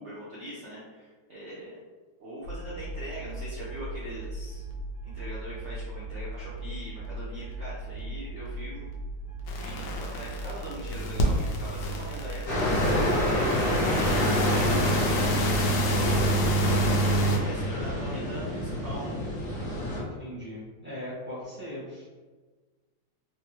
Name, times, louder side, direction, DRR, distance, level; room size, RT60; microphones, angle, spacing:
voice 1, 0.0-1.7 2.2-4.6 5.0-8.9 9.6-17.2 17.4-19.1, equal, 70° right, -8 dB, 0.6 m, -41 dB
sound 1, 2.4-16.7, right 2 dB, 90° left, 1.4 m, -38 dB
sound 2, 9.5-17.4, right 1 dB, 75° left, 1.1 m, -28 dB
sound 3, 12.5-20.0, left 1 dB, 55° left, 1.3 m, -28 dB
voice 2, 19.9-22.1, equal, 10° right, -10 dB, 0.6 m, -40 dB
3.7 x 2.1 x 2.9 m, 1.3 s
omnidirectional pair, 2.1 m